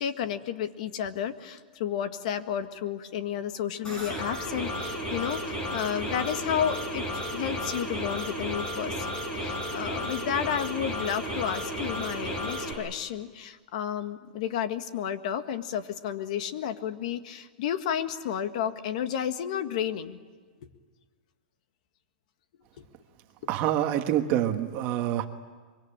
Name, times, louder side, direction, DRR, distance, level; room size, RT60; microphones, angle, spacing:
voice 1, 0.0-9.1 9.3-20.2, left 9 dB, 55° left, 9 dB, 1.7 m, -32 dB
sound 1, 3.8-12.7, equal, 15° left, 6.5 m, -33 dB
voice 2, 23.5-25.3, right 11 dB, 35° right, 6 dB, 1.4 m, -26 dB
24.5 x 24.0 x 8.9 m, 1.5 s
supercardioid pair, 165°, 5 cm